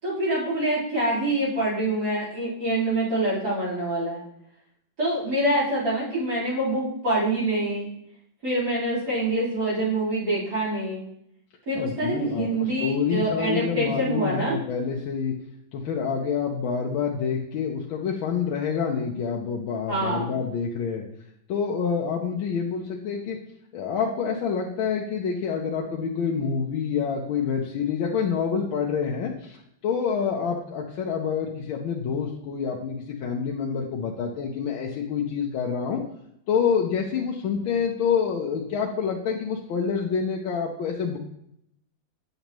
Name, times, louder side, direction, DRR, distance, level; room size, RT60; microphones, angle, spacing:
voice 1, 0.0-4.2 5.0-7.9 8.4-11.0 11.7-14.6 19.9-20.4, right 1 dB, 50° right, -9 dB, 4.2 m, -25 dB
voice 2, 11.7-12.5 12.8-15.3 15.7-21.0 21.5-23.4 23.7-29.6 29.8-36.0 36.5-41.2, left 6 dB, 80° left, -1 dB, 1.6 m, -27 dB
9.3 x 6.7 x 3.0 m, 0.76 s
omnidirectional pair, 2.2 m